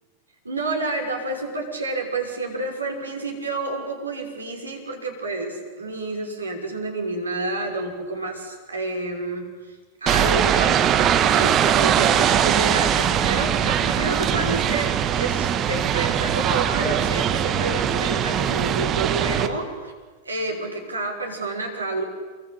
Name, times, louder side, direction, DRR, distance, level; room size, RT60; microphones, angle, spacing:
voice 1, 0.4-9.7 10.0-19.9 20.2-22.0, right 3 dB, 80° right, 2 dB, 6.1 m, -29 dB
sound 1, 10.1-19.5, right 9 dB, 30° right, 1.9 m, -21 dB
27.5 x 23.5 x 9.1 m, 1.3 s
figure-of-eight pair, 90°, 0 cm